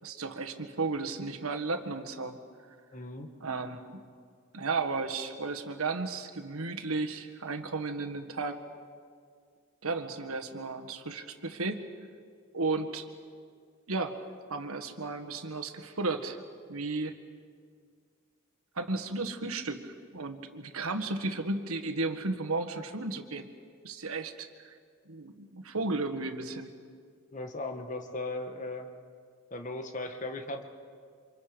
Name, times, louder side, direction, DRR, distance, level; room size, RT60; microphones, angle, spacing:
voice 1, 0.0-2.4 3.4-4.0 4.5-8.6 9.8-11.8 12.5-13.0 13.9-14.2 14.5-16.4 16.7-17.1 18.7-23.5 23.8-24.8 25.1-26.7, right 3 dB, 90° right, 5 dB, 1.6 m, -34 dB
voice 2, 2.9-3.3 27.3-28.9 29.5-30.6, left 2 dB, 35° left, 5 dB, 1.5 m, -37 dB
28.0 x 26.5 x 5.2 m, 2.1 s
head